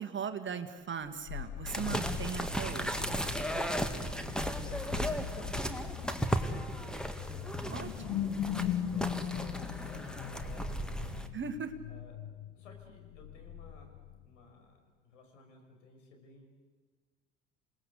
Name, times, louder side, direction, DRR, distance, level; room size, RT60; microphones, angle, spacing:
voice 1, 0.0-3.2 7.7-8.4 11.3-11.7, right 7 dB, 30° right, 8 dB, 1.8 m, -39 dB
sound 1, 1.3-14.5, left 10 dB, 55° left, 1.0 m, -40 dB
sound 2, 1.7-11.3, equal, ahead, 2.0 m, -35 dB
voice 2, 3.8-11.4 11.9-12.2 12.5-16.5, left 3 dB, 75° left, 3 dB, 5.5 m, -55 dB
28.0 x 19.0 x 8.3 m, 1.4 s
figure-of-eight pair, 65°, 37 cm